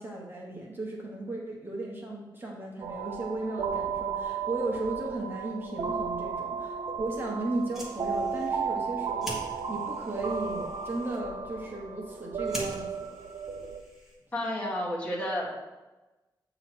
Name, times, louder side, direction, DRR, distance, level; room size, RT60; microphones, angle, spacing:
voice 1, 0.0-13.1, right 2 dB, 25° right, -2 dB, 1.1 m, -35 dB
sound 1, 2.8-13.8, right 6 dB, 70° right, 0.6 m, -34 dB
Fire, 7.5-14.4, equal, 5° right, 1.5 m, -45 dB
voice 2, 14.3-15.7, left 1 dB, 20° left, -5 dB, 1.6 m, -31 dB
8.5 x 3.0 x 6.0 m, 1.1 s
wide cardioid pair, 150°, 8 cm